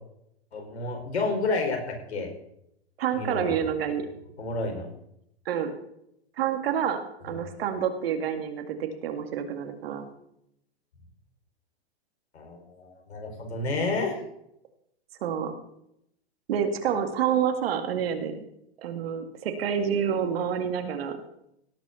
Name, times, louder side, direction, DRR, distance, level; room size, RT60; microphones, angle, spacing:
voice 1, 0.5-2.3 3.1-3.5 4.4-4.9 7.3-7.4 12.3-14.2, left 3 dB, 85° left, 2 dB, 5.0 m, -30 dB
voice 2, 3.0-4.1 5.5-5.7 6.4-7.0 7.2-10.0 15.2-15.5 16.5-18.4 18.8-21.2, right 8 dB, 65° right, 6 dB, 2.2 m, -28 dB
17.5 x 6.3 x 7.0 m, 0.78 s
hypercardioid pair, 135°, 32 cm